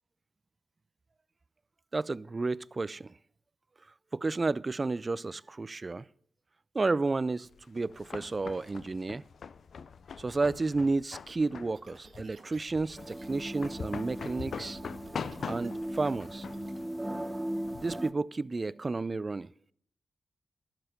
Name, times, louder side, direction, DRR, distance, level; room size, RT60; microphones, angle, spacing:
voice 1, 1.9-3.1 4.1-6.1 6.7-9.2 10.2-14.8 15.5-16.4 17.8-19.5, right 3 dB, 40° right, 0.4 m, -31 dB
sound 1, 7.5-17.9, left 6 dB, 75° left, 0.4 m, -43 dB
sound 2, 11.7-13.3 13.6-13.9 14.2-16.8, right 4 dB, 60° right, 1.4 m, -57 dB
sound 3, 13.0-18.1, right 1 dB, 10° right, 0.8 m, -38 dB
12.0 x 7.7 x 6.6 m
cardioid pair, 45°, 0 cm